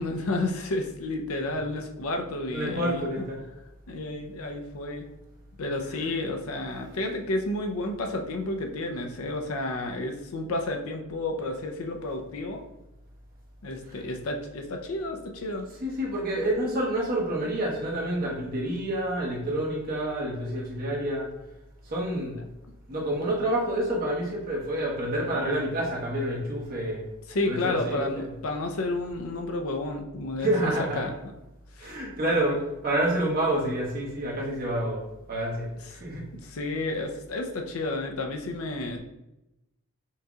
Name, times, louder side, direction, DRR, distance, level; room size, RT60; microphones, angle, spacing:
voice 1, 0.0-3.2 3.9-5.1 5.6-12.6 13.6-15.7 27.3-31.1 31.8-31.9 32.3-32.6 36.4-39.0, left 2 dB, 85° left, 3 dB, 0.6 m, -31 dB
voice 2, 2.5-3.4 5.8-6.1 13.9-14.0 15.8-21.3 21.8-22.4 22.9-27.1 27.4-28.3 30.4-31.1 31.8-36.2, right 1 dB, 45° right, -4 dB, 1.2 m, -28 dB
5.6 x 2.9 x 2.4 m, 0.93 s
head